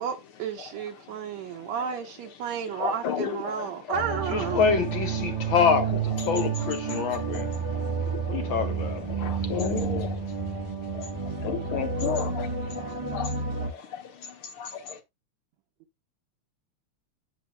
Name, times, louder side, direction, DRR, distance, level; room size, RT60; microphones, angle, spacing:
voice 1, 0.0-4.6, right 8 dB, 75° right, 2.0 m, -32 dB
voice 2, 0.6-1.9 2.5-4.0 6.9-8.5 9.1-15.0, left 7 dB, 55° left, 1.9 m, -35 dB
sound 1, 3.9-13.7, right 5 dB, 15° right, 1.3 m, -30 dB
voice 3, 4.3-6.0 6.3-7.6 8.1-9.1 9.4-9.5, left 6 dB, 70° left, 1.2 m, -26 dB
10.5 x 7.8 x 2.2 m
omnidirectional pair, 3.3 m